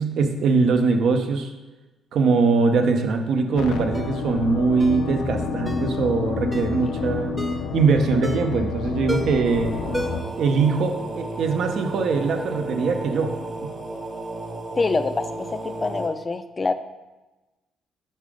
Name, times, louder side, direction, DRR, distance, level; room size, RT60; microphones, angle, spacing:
voice 1, 0.0-1.5 2.1-7.3 7.7-9.8 10.4-13.3 13.6-13.7, right 4 dB, 70° right, 6 dB, 0.7 m, -22 dB
sound 1, 3.6-10.2, left 4 dB, 85° left, 0.5 m, -29 dB
Ringtone, 3.9-4.2 4.8-5.0 5.7-5.9 6.5-6.8 7.4-7.7 8.2-8.6 9.1-9.5 9.9-10.4 10.7-10.8, equal, 10° right, 0.7 m, -32 dB
sound 2, 9.4-16.1, right 2 dB, 45° right, 1.1 m, -33 dB
voice 2, 14.8-16.7, left 3 dB, 30° left, 10 dB, 0.4 m, -25 dB
5.5 x 3.8 x 4.9 m, 1.1 s
cardioid pair, 90°, 0 cm